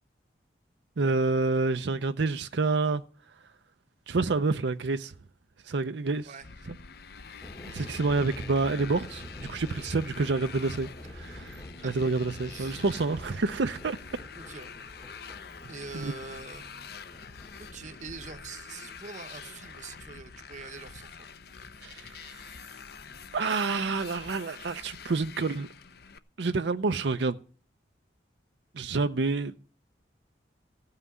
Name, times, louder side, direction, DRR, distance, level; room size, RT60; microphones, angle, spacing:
voice 1, 1.0-3.0 4.1-5.1 5.6-6.3 7.6-14.0 15.9-16.1 21.8-22.6 23.3-25.7 26.4-27.4 28.7-29.5, right 3 dB, 70° right, 0.6 m, -28 dB
Motorcycle, 6.4-26.2, left 6 dB, 55° left, 0.7 m, -46 dB
sound 1, 7.4-21.2, left 1 dB, 20° left, 1.0 m, -48 dB
voice 2, 12.4-12.8 14.3-14.8 15.7-16.9 17.6-21.3, right 4 dB, 40° right, 0.8 m, -44 dB
15.0 x 5.7 x 9.5 m
head